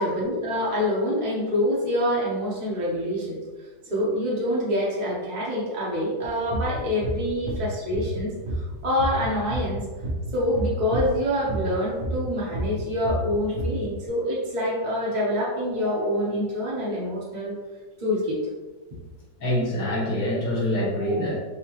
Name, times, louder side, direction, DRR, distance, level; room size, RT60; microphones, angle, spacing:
voice 1, 0.0-3.4 3.9-8.3 8.8-9.8 10.3-17.5 18.0-18.4 21.0-21.3, left 1 dB, 45° right, -7 dB, 0.6 m, -26 dB
sound 1, 6.2-8.2 8.5-12.3 12.5-13.9, right 1 dB, 90° right, 1.7 m, -30 dB
voice 2, 19.4-21.4, equal, 65° left, -6 dB, 2.1 m, -25 dB
5.5 x 2.9 x 2.9 m, 1.3 s
omnidirectional pair, 2.1 m